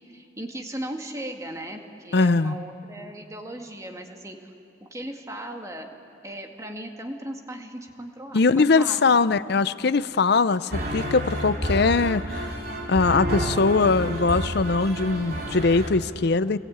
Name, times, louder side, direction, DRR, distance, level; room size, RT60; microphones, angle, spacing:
voice 1, 0.0-4.5 4.8-5.9 6.2-9.4, right 1 dB, 15° right, 3 dB, 1.9 m, -37 dB
voice 2, 2.1-2.6 8.3-12.5 12.9-16.6, left 4 dB, 55° left, 15 dB, 0.6 m, -21 dB
sound 1, 10.7-15.9, equal, 50° right, 3.0 m, -30 dB
27.5 x 20.0 x 8.8 m, 2.7 s
head